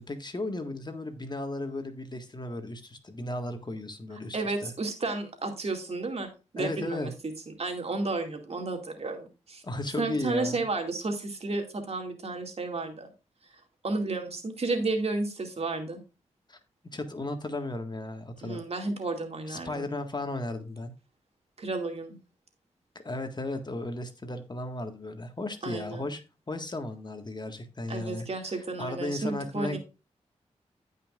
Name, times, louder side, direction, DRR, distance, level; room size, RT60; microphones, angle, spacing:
voice 1, 0.0-4.7 6.6-7.1 9.6-10.6 16.5-16.6 16.9-18.6 19.5-20.9 23.0-26.2 26.5-29.8, left 2 dB, 35° left, 6 dB, 1.7 m, -35 dB
voice 2, 4.3-7.1 7.6-9.6 10.0-13.1 13.8-16.0 18.4-19.9 21.6-22.2 25.6-26.0 27.9-29.8, right 3 dB, 55° right, 4 dB, 2.3 m, -32 dB
15.0 x 5.6 x 2.5 m, 0.30 s
cardioid pair, 50°, 12 cm